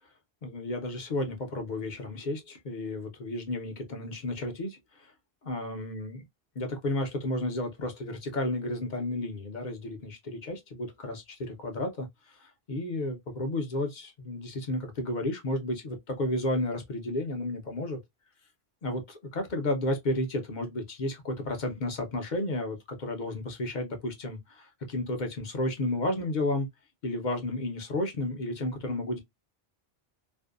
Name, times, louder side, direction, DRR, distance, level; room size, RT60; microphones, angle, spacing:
voice 1, 0.4-5.1 5.4-6.2 6.6-18.0 18.8-26.7 27.0-29.2, left 1 dB, 55° left, 0.7 m, -32 dB
2.6 x 2.1 x 2.3 m
omnidirectional pair, 1.0 m